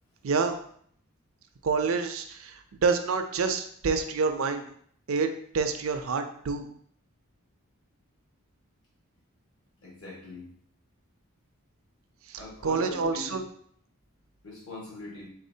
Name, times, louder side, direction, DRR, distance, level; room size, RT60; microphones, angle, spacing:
voice 1, 0.2-0.6 1.6-4.6 5.1-5.3 5.5-6.7 12.3-13.4, right 4 dB, 70° right, 7 dB, 0.4 m, -27 dB
voice 2, 9.8-10.5 12.4-13.4 14.4-15.3, left 2 dB, 70° left, -4 dB, 1.6 m, -41 dB
4.1 x 3.6 x 2.7 m, 0.63 s
head